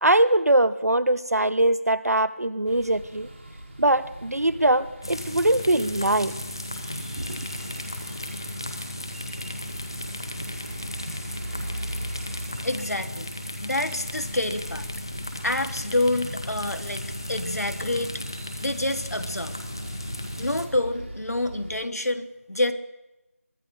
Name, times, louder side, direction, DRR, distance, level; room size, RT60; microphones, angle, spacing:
voice 1, 0.0-3.3 3.8-6.3 7.3-7.4, right 1 dB, 90° right, 16 dB, 0.7 m, -22 dB
sound 1, 2.7-21.8, right 1 dB, 50° right, 2.4 m, -40 dB
sound 2, 5.0-20.7, left 1 dB, 15° left, 0.6 m, -36 dB
voice 2, 12.6-13.3 13.6-14.9 15.4-17.0 17.3-18.1 18.6-19.5 20.4-22.7, left 1 dB, 85° left, 8 dB, 1.3 m, -27 dB
22.0 x 13.5 x 2.6 m, 0.98 s
figure-of-eight pair, 175°, 8 cm